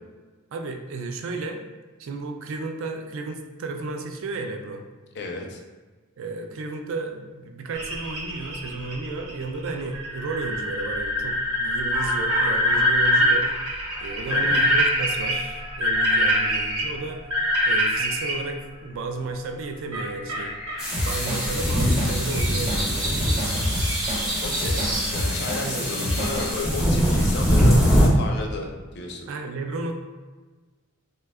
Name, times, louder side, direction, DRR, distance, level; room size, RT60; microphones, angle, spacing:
voice 1, 0.5-1.6 2.0-4.9 6.2-13.5 14.0-17.2 17.7-20.5 21.0-23.3 25.6-25.9 29.3-29.9, right 3 dB, 65° right, 4 dB, 0.3 m, -33 dB
voice 2, 5.1-5.6 14.3-14.6 24.4-29.3, left 3 dB, 50° left, 2 dB, 0.4 m, -33 dB
sound 1, 7.7-18.3 19.9-25.1, equal, 85° right, 0.9 m, -25 dB
sound 2, 20.8-28.1, equal, ahead, 0.5 m, -23 dB
Drum kit / Drum, 20.9-26.5, left 1 dB, 35° right, 0.9 m, -29 dB
2.7 x 2.2 x 3.4 m, 1.3 s
head